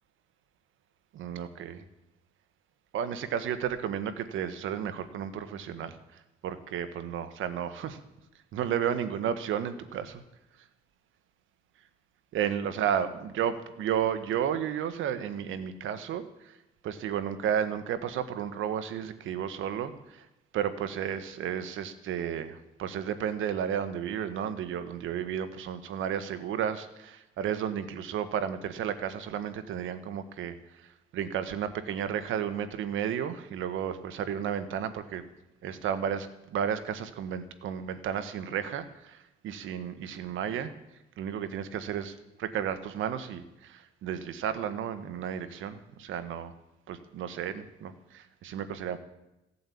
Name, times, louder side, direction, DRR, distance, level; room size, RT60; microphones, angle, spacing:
voice 1, 1.1-1.8 2.9-8.0 8.5-10.2 12.3-16.6 16.8-20.3 20.5-35.2 35.6-40.7 41.2-46.5 46.9-49.0, right 9 dB, 80° right, 11 dB, 1.4 m, -33 dB
16.0 x 8.5 x 8.6 m, 0.93 s
cardioid pair, 90°, 20 cm